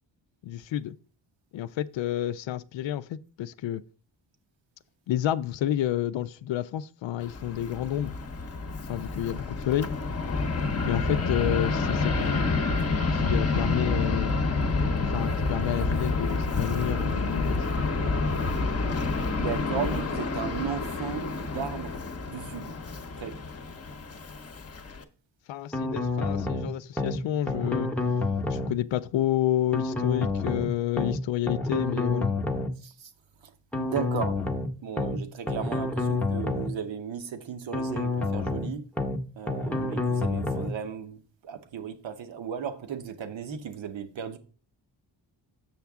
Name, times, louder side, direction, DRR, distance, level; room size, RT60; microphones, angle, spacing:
voice 1, 0.4-1.0 1.5-3.8 5.1-8.1 8.9-9.9 10.9-12.5 13.1-14.3 15.1-17.6 25.5-27.9 28.5-32.3, left 12 dB, 75° left, 0.5 m, -29 dB
Fixed-wing aircraft airplane, 7.2-25.0, left 3 dB, 35° left, 0.8 m, -28 dB
voice 2, 19.2-22.0 22.3-22.8 23.2-23.4 32.8-33.1 33.4-34.5 34.8-38.8 39.3-44.4, right 7 dB, 75° right, 1.0 m, -35 dB
sound 1, 25.7-26.7 27.0-27.2 27.5-28.7 29.7-30.7 31.0-31.2 31.5-32.7 33.7-34.7 35.0-35.2 35.5-36.7 37.7-38.7 39.0-39.2 39.5-40.7, left 3 dB, 5° left, 0.8 m, -28 dB
7.1 x 5.8 x 3.5 m
cardioid pair, 65°, 45 cm